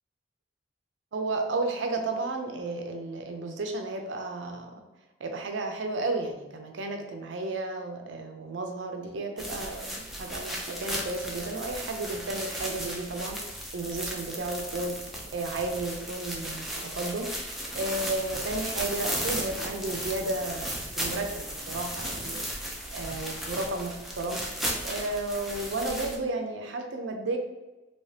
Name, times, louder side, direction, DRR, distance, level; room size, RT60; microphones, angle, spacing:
voice 1, 1.1-4.8 5.2-14.9 15.3-22.5 22.9-24.4 24.8-27.4, right 2 dB, 80° right, 4 dB, 0.5 m, -33 dB
sound 1, 9.4-26.2, equal, ahead, 0.5 m, -35 dB
3.2 x 2.9 x 2.8 m, 1.1 s
head